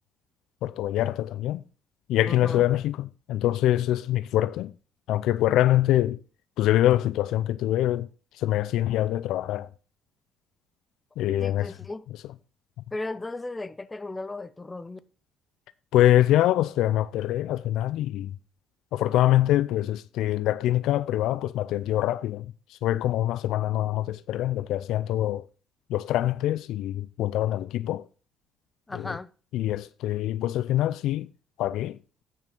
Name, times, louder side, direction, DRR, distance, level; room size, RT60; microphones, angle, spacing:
voice 1, 0.6-1.6 2.1-4.7 5.1-6.2 6.6-8.1 8.4-9.7 11.2-11.7 15.9-18.3 18.9-25.5 25.9-28.0 28.9-29.1 29.5-31.3 31.6-32.0, left 13 dB, 75° left, 0.4 m, -24 dB
voice 2, 2.3-2.6 11.4-12.1 12.9-15.0 28.9-29.3, left 2 dB, 20° left, 0.7 m, -35 dB
9.4 x 5.9 x 5.3 m
supercardioid pair, 75°, 0 cm